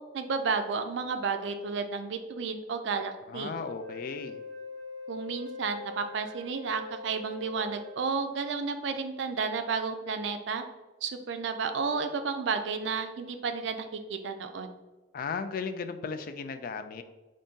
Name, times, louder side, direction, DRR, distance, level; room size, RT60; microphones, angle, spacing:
voice 1, 0.1-3.5 5.1-10.6 11.0-14.7, right 5 dB, 75° right, 7 dB, 0.4 m, -32 dB
voice 2, 3.3-4.4 15.1-17.0, left 5 dB, 50° left, 9 dB, 0.3 m, -36 dB
Wind instrument woodwind instrument, 3.6-8.4, left 4 dB, 25° right, 1.4 m, -43 dB
3.9 x 2.6 x 3.6 m, 1.2 s
head